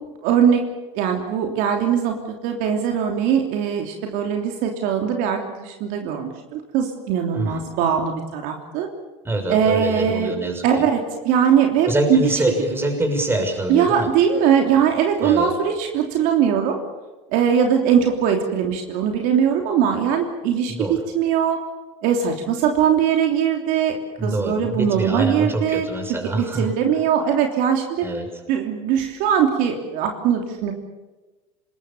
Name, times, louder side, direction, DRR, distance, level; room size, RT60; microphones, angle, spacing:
voice 1, 0.2-0.6 0.9-8.9 9.5-10.3 10.6-12.2 13.7-16.8 17.3-21.6 22.0-24.0 24.2-25.9 26.3-28.0 28.5-30.7, right 8 dB, 60° right, 3 dB, 3.2 m, -20 dB
voice 2, 7.3-7.6 9.2-10.8 11.8-14.1 15.2-15.5 20.7-21.0 24.2-26.7 28.0-28.3, right 1 dB, 15° right, 5 dB, 6.4 m, -24 dB
26.5 x 20.5 x 7.2 m, 1.2 s
hypercardioid pair, 100°, 16 cm